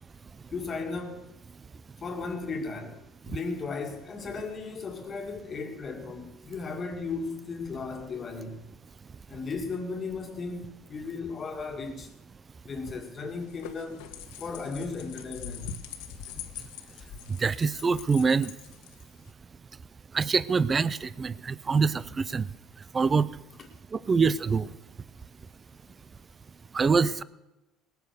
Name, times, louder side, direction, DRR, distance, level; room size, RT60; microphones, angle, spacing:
voice 1, 0.5-1.3 2.0-8.7 9.3-12.1 12.7-14.0 14.4-15.8, left 4 dB, 25° left, 1.9 m, -36 dB
sound 1, 13.3-19.3, left 9 dB, 85° left, 1.5 m, -43 dB
voice 2, 17.4-18.5 20.1-22.0 22.3-22.4 22.9-23.3 24.1-24.7 26.7-27.2, right 5 dB, 20° right, 0.4 m, -24 dB
19.0 x 9.1 x 6.7 m
cardioid pair, 155°, 0 cm